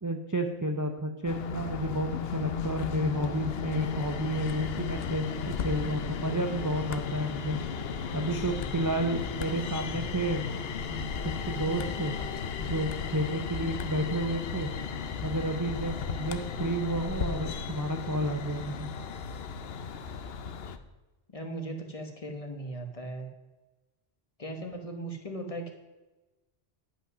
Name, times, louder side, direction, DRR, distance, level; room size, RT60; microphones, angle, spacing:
voice 1, 0.0-7.6 8.1-10.5 10.8-11.1 11.5-12.1 12.6-14.7 15.2-18.9, right 1 dB, 20° right, 4 dB, 0.6 m, -31 dB
sound 1, 1.3-20.8, left 6 dB, 70° left, 0.9 m, -35 dB
voice 2, 21.3-23.3 24.4-25.7, right 1 dB, 35° left, 4 dB, 1.2 m, -38 dB
10.5 x 5.6 x 6.1 m, 1.1 s
omnidirectional pair, 1.1 m